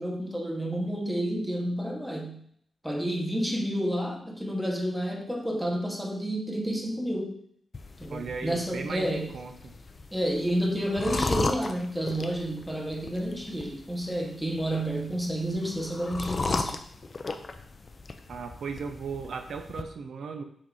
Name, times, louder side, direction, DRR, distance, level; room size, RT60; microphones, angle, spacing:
voice 1, 0.0-2.4 2.8-7.3 8.0-9.4 10.1-16.8, equal, 5° right, 0 dB, 1.1 m, -30 dB
sound 1, 7.7-19.8, left 3 dB, 30° left, 0.5 m, -36 dB
voice 2, 8.1-9.7 18.3-20.4, right 5 dB, 65° right, 6 dB, 0.6 m, -36 dB
5.9 x 4.0 x 4.8 m, 0.66 s
wide cardioid pair, 165°, 0 cm